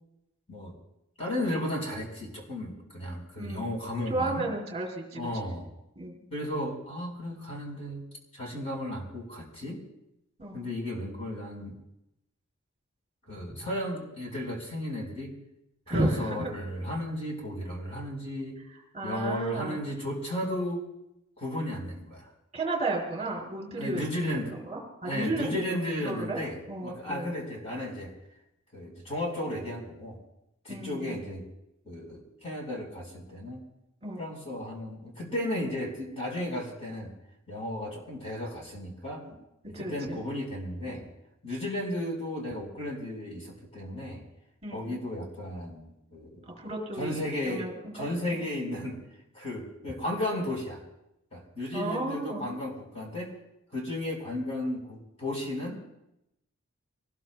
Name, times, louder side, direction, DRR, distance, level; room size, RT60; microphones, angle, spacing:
voice 1, 1.2-4.4 5.1-5.7 6.3-9.8 10.5-11.8 13.3-15.4 15.9-18.6 19.0-20.8 21.4-22.3 23.8-24.5 25.0-28.1 28.7-30.2 30.6-31.4 31.8-33.6 34.2-37.1 37.5-39.2 39.7-41.0 41.4-44.2 44.7-46.4 47.0-47.7 47.9-49.0 49.3-50.8 51.3-53.3 53.7-55.8, left 1 dB, 30° left, -1 dB, 4.9 m, -34 dB
voice 2, 3.4-3.7 4.1-5.3 6.0-6.2 10.4-10.6 15.9-16.5 18.9-19.8 22.5-25.8 26.0-26.4 26.7-27.3 30.7-31.2 34.0-34.2 39.2-39.3 39.7-40.2 44.6-44.9 46.6-48.5 51.7-52.5, right 2 dB, 30° right, -1 dB, 3.2 m, -33 dB
26.0 x 19.5 x 2.3 m, 0.85 s
head